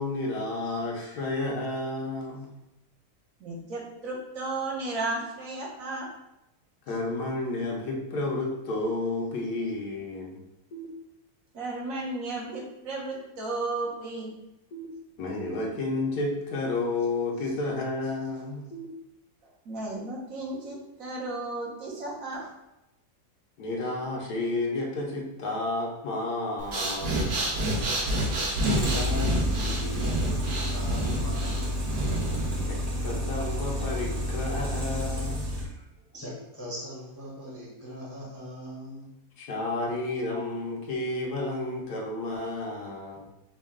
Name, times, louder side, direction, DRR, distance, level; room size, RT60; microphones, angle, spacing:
voice 1, 0.0-2.5 6.9-10.4 15.2-18.7 23.6-27.2 32.7-35.5 39.4-43.2, left 2 dB, 75° left, -1 dB, 1.3 m, -31 dB
voice 2, 3.4-6.1 11.5-14.3 19.6-22.5, right 2 dB, 60° right, -2 dB, 1.3 m, -34 dB
sound 1, 10.7-11.7 14.7-15.7 18.7-19.7, right 3 dB, 60° left, 1.1 m, -45 dB
Breathing, 26.6-32.6, right 1 dB, 85° right, 1.5 m, -29 dB
sound 2, 27.6-35.6, equal, 40° right, 0.6 m, -30 dB
voice 3, 28.7-32.0 35.6-35.8 36.1-39.1, left 1 dB, 15° left, -6 dB, 0.7 m, -39 dB
5.4 x 2.3 x 3.6 m, 0.91 s
omnidirectional pair, 1.7 m